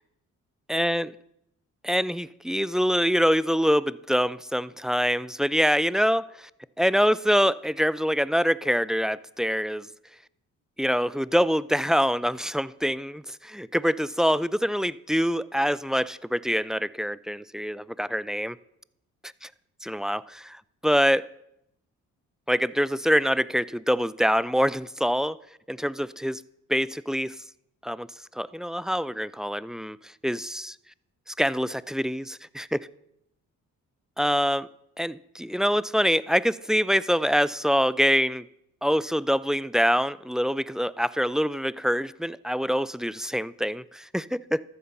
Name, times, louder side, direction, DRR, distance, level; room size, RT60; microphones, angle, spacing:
voice 1, 0.7-1.1 1.8-6.5 6.8-9.9 10.8-18.6 19.4-19.5 19.8-21.3 22.5-25.4 25.7-26.4 26.7-27.4 27.8-28.1 28.3-30.8 31.3-32.9 34.2-34.7 35.0-38.5 38.8-44.6, equal, ahead, 0.5 m, -25 dB
13.5 x 9.7 x 7.2 m
cardioid pair, 70°, 32 cm